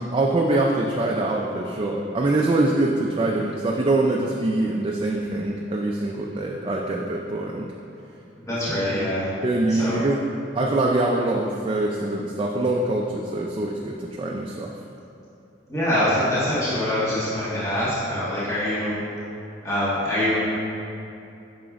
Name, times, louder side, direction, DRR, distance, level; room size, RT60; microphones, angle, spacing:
voice 1, 0.0-7.7 8.9-9.1 9.4-10.2 10.5-14.7, right 2 dB, 30° right, -1 dB, 0.3 m, -24 dB
voice 2, 8.5-9.3 9.7-10.0 15.7-18.9 19.6-20.4, left 1 dB, 15° left, -11 dB, 1.5 m, -24 dB
9.0 x 5.8 x 2.5 m, 2.7 s
head